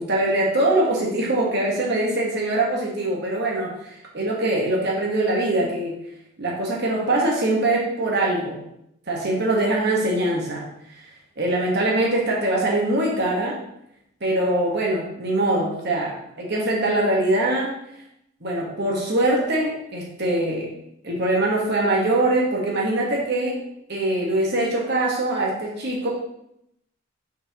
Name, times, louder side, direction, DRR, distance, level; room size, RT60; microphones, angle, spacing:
voice 1, 0.0-5.9 6.4-8.6 9.1-10.7 11.4-13.6 14.2-17.7 18.4-20.7 21.0-23.6 23.9-26.1, right 1 dB, 50° right, -2 dB, 1.2 m, -23 dB
6.6 x 5.7 x 2.9 m, 0.79 s
head